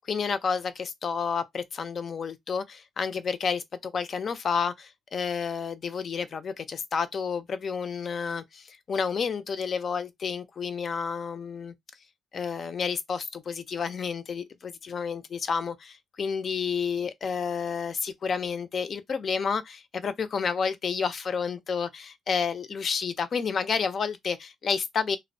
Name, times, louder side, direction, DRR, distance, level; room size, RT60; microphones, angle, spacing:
voice 1, 0.0-11.7 12.3-25.2, left 6 dB, 50° left, 0.4 m, -30 dB
2.6 x 2.1 x 2.5 m
cardioid pair, 90°, 0 cm